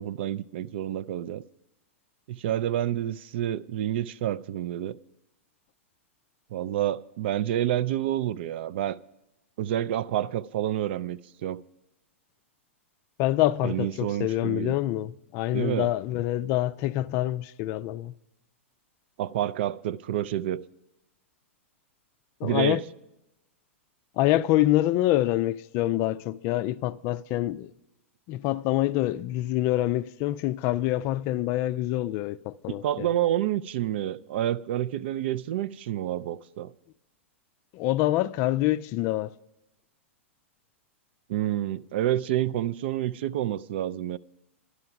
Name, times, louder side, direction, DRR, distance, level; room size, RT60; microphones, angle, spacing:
voice 1, 0.0-1.4 2.3-5.0 6.5-9.0 9.6-11.6 13.6-14.8 15.5-15.9 19.2-20.6 22.4-22.8 32.7-36.7 41.3-44.2, right 12 dB, 55° right, 0.4 m, -28 dB
voice 2, 13.2-18.1 22.4-22.8 24.2-27.7 28.3-33.1 37.7-39.3, left 15 dB, 40° left, 0.4 m, -26 dB
11.5 x 11.0 x 5.8 m
figure-of-eight pair, 105°, 7 cm